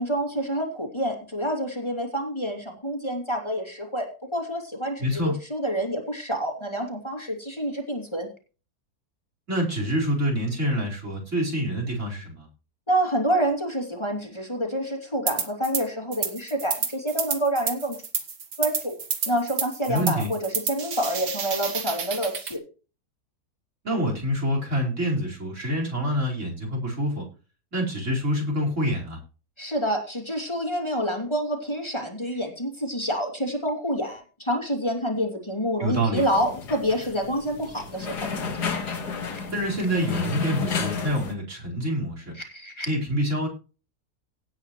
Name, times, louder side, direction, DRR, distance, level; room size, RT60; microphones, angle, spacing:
voice 1, 0.0-8.3 12.9-18.0 18.6-19.0 19.3-22.6 29.6-38.2 42.4-42.9, equal, 15° left, 2 dB, 2.9 m, -28 dB
voice 2, 5.0-5.3 9.5-12.5 19.9-20.3 23.8-27.3 27.7-29.2 35.8-36.2 39.5-42.3 42.9-43.5, equal, 45° right, 1 dB, 5.1 m, -26 dB
sound 1, 15.3-15.8 16.1-22.6, right 6 dB, 90° right, 2.3 m, -30 dB
sound 2, 36.2-41.3, left 5 dB, 75° left, 2.4 m, -31 dB
17.5 x 8.6 x 3.2 m, 0.34 s
omnidirectional pair, 1.8 m